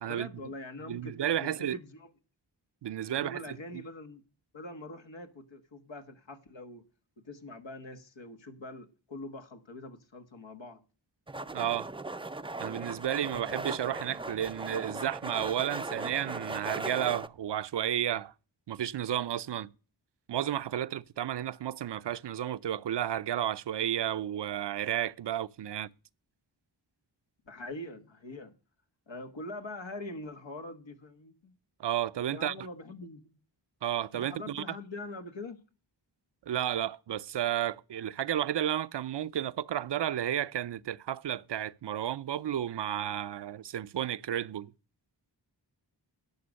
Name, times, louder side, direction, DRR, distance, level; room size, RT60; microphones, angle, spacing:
voice 1, 0.0-2.1 3.1-4.2 4.5-6.9 7.2-10.8 27.4-28.5 29.1-31.5 32.3-33.4 34.1-35.6, left 2 dB, 75° left, 1.4 m, -43 dB
voice 2, 0.9-1.8 2.8-3.4 11.5-11.9 12.6-18.3 18.7-19.7 20.3-25.9 31.8-32.5 33.8-34.8 36.5-44.7, right 11 dB, 65° right, 0.5 m, -32 dB
sound 1, 11.3-17.3, right 2 dB, 10° right, 0.4 m, -38 dB
11.5 x 6.7 x 6.3 m
wide cardioid pair, 55°, 45 cm